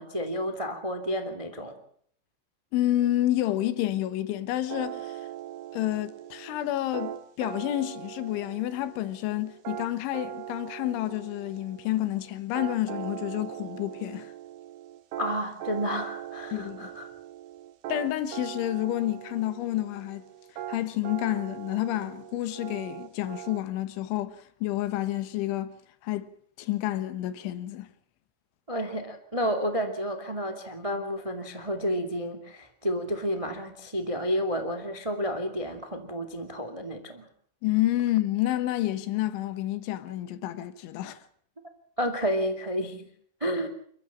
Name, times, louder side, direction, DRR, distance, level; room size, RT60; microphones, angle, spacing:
voice 1, 0.0-1.8 15.2-17.1 28.7-37.3 42.0-43.1 43.4-43.7, equal, 30° right, 0.6 m, -31 dB
voice 2, 2.7-5.2 5.7-14.3 16.5-16.9 17.9-20.2 20.7-25.7 26.0-26.3 26.6-27.9 37.6-41.2, left 14 dB, 75° left, 3.7 m, -29 dB
sound 1, 4.7-23.6, right 12 dB, 60° right, 3.3 m, -40 dB
29.5 x 14.0 x 7.4 m
omnidirectional pair, 5.6 m